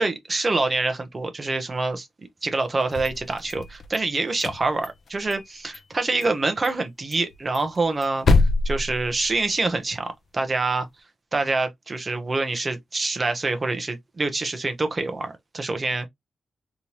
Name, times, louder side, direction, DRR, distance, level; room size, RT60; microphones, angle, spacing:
voice 1, 0.0-2.1 2.4-10.9 11.3-16.1, right 3 dB, 30° right, 0.8 m, -26 dB
sound 1, 2.8-4.0 4.3-5.5 5.7-5.8 6.2-6.4 6.6-6.7 7.1-9.7, left 3 dB, 55° left, 0.6 m, -25 dB
3.4 x 3.0 x 2.7 m
wide cardioid pair, 130°, 0 cm